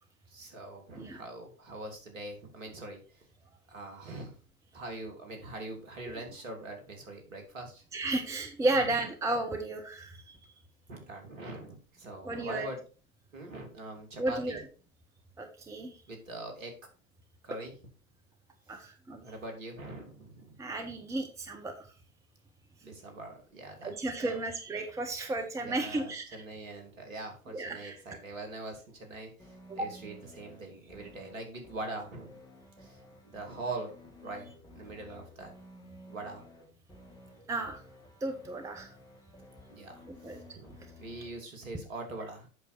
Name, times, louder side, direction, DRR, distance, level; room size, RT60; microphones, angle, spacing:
voice 1, 0.3-3.3 3.7-4.4 4.7-7.8 8.7-8.8 10.9-12.8 13.3-14.6 16.1-16.7 17.4-17.7 18.8-18.9 19.2-20.6 22.8-24.4 25.6-32.4 32.8-33.0 33.2-35.5 36.1-36.4 39.7-42.5, right 2 dB, 65° right, 3 dB, 2.8 m, -43 dB
voice 2, 7.9-10.4 12.2-12.7 14.2-14.6 15.4-16.0 18.7-19.2 20.6-21.7 23.8-26.2 27.5-28.0 29.7-29.9 37.5-37.8 38.2-38.9 40.0-40.4, right 2 dB, 5° right, 5 dB, 0.9 m, -33 dB
sound 1, 29.4-41.4, left 1 dB, 10° left, 2.1 m, -54 dB
8.1 x 6.3 x 4.5 m, 0.37 s
figure-of-eight pair, 90°, 43 cm